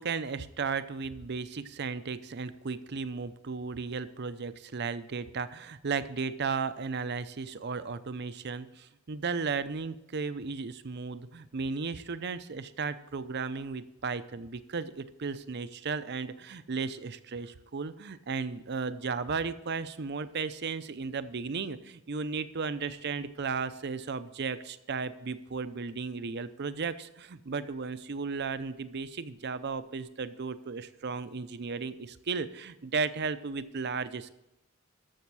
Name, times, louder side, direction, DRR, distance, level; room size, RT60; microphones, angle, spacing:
voice 1, 0.0-34.3, right 5 dB, 55° right, 12 dB, 0.6 m, -35 dB
14.0 x 6.4 x 4.7 m, 0.90 s
head